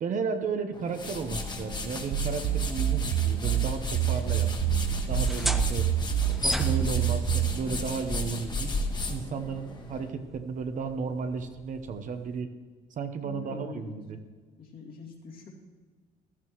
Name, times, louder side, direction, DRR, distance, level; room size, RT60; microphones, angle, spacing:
voice 1, 0.0-4.6 5.1-5.9 6.3-8.7 9.1-12.5 13.0-14.2, right 5 dB, 50° right, 7 dB, 1.0 m, -33 dB
sound 1, 0.7-10.1, left 2 dB, 25° left, 1.3 m, -34 dB
sound 2, 2.1-7.6, right 13 dB, 65° right, 0.4 m, -27 dB
sound 3, 5.1-12.4, equal, ahead, 0.7 m, -38 dB
voice 2, 13.2-13.9 14.6-15.5, left 5 dB, 60° left, -2 dB, 2.6 m, -43 dB
14.5 x 12.5 x 3.1 m, 1.4 s
cardioid pair, 110°, 17 cm